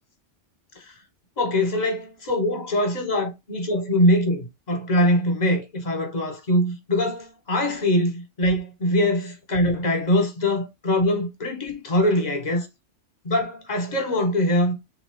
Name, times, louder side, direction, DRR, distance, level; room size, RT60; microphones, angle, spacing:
voice 1, 1.4-12.7 13.2-14.7, left 1 dB, 35° left, 1.3 m, -23 dB
3.6 x 2.8 x 3.5 m
omnidirectional pair, 1.2 m